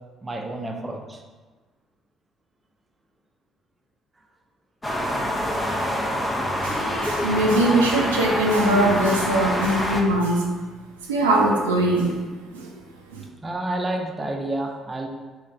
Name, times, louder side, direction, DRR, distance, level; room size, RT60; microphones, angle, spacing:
voice 1, 0.2-1.2 13.4-15.1, right 1 dB, 25° right, 2 dB, 0.6 m, -29 dB
sound 1, 4.8-10.0, equal, 20° left, 0.6 m, -26 dB
voice 2, 6.6-10.5 11.0-12.2 12.5-12.7 13.1-13.2, right 1 dB, 85° right, -2 dB, 0.4 m, -21 dB
4.0 x 3.2 x 2.5 m, 1.3 s
hypercardioid pair, 50°, 0 cm